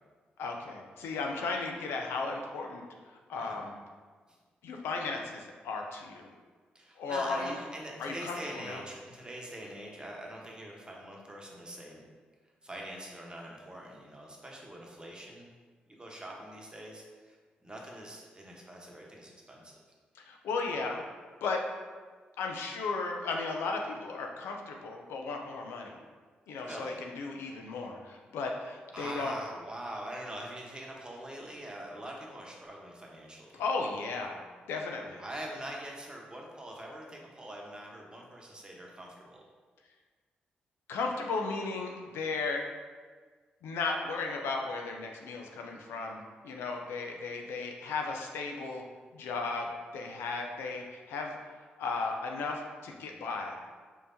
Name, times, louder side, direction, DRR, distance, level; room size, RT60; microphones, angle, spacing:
voice 1, 0.4-2.8 3.1-3.8 4.6-6.3 7.0-7.6 8.0-8.8 20.1-21.0 21.4-21.7 22.4-26.0 26.5-29.3 33.5-34.4 34.7-35.2 40.9-42.6 43.6-48.8 49.1-51.4 51.8-53.6, left 3 dB, 80° left, 2 dB, 0.4 m, -35 dB
voice 2, 6.7-12.0 12.6-15.5 16.0-17.4 17.6-19.8 26.6-27.0 28.9-33.6 35.2-39.4, right 1 dB, 20° right, -1 dB, 1.0 m, -43 dB
4.5 x 3.3 x 2.7 m, 1.5 s
supercardioid pair, 45°, 4 cm